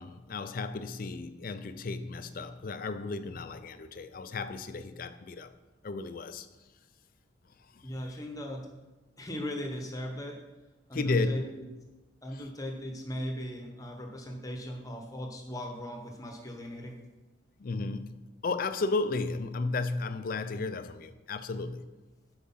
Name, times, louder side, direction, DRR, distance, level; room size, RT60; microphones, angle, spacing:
voice 1, 0.0-5.5 5.8-6.5 10.9-11.4 17.6-21.9, left 3 dB, 45° left, 0.4 m, -33 dB
voice 2, 7.8-8.7 9.2-10.4 10.9-11.6 12.2-17.0, equal, 15° left, 1.0 m, -38 dB
8.4 x 4.8 x 5.6 m
head